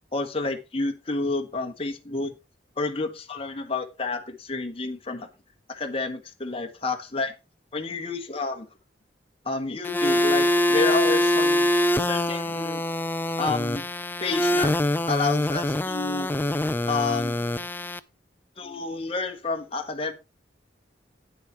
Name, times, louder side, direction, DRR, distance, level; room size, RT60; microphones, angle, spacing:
voice 1, 0.1-2.3 2.8-5.3 5.7-7.3 7.7-8.7 9.4-11.7 12.0-12.8 13.4-13.8 14.2-14.7 15.1-16.3 16.9-17.4 18.6-20.1, left 3 dB, 30° left, 4 dB, 1.4 m, -29 dB
sound 1, 9.8-18.0, left 1 dB, 10° left, 0.4 m, -24 dB
9.5 x 6.9 x 4.5 m, 0.27 s
head